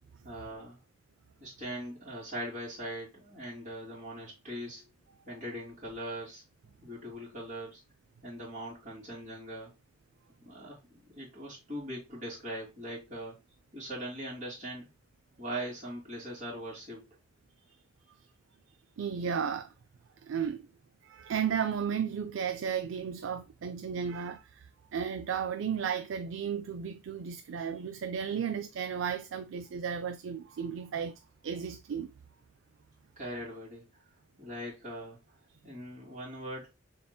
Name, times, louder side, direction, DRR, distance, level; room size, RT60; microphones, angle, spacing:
voice 1, 0.2-0.8 1.4-4.8 5.3-7.8 8.2-9.7 10.4-13.3 13.7-14.9 15.4-17.1 33.2-33.9 34.4-35.2 35.6-36.7, right 1 dB, 40° right, 2.7 m, -41 dB
voice 2, 19.0-19.7 20.2-20.7 21.0-32.1, right 7 dB, 80° right, 0.4 m, -34 dB
6.8 x 2.8 x 2.2 m
head